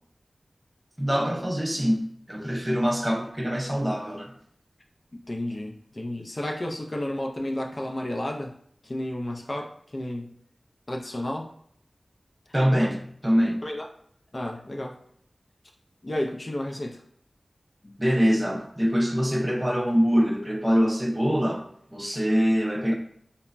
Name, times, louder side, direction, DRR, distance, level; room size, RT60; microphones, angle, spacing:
voice 1, 1.0-4.3 12.5-13.7 18.0-21.7 21.9-22.9, equal, 20° right, 0.5 m, -24 dB
voice 2, 5.1-8.5 8.8-10.3 10.9-11.5 12.7-12.9 13.6-13.9 14.3-14.9 16.0-17.0 17.8-17.9, left 1 dB, 45° left, 0.3 m, -32 dB
3.2 x 2.0 x 2.4 m
wide cardioid pair, 50°, 0 cm